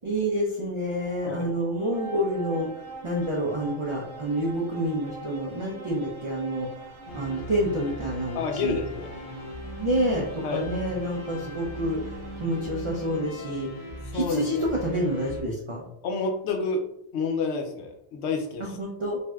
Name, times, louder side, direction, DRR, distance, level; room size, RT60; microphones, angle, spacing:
voice 1, 0.0-2.7 3.0-6.7 7.1-8.8 9.8-13.7 14.1-15.9 18.6-19.2, equal, 55° right, -2 dB, 0.3 m, -28 dB
sound 1, 0.8-13.6, right 3 dB, 85° right, 1.0 m, -44 dB
sound 2, 7.1-15.4, equal, 55° left, 0.4 m, -39 dB
voice 2, 8.3-9.1 10.4-10.7 14.1-14.7 16.0-16.8 17.1-18.8, left 4 dB, 75° left, 3 dB, 0.8 m, -29 dB
3.2 x 2.6 x 2.3 m, 0.74 s
omnidirectional pair, 1.2 m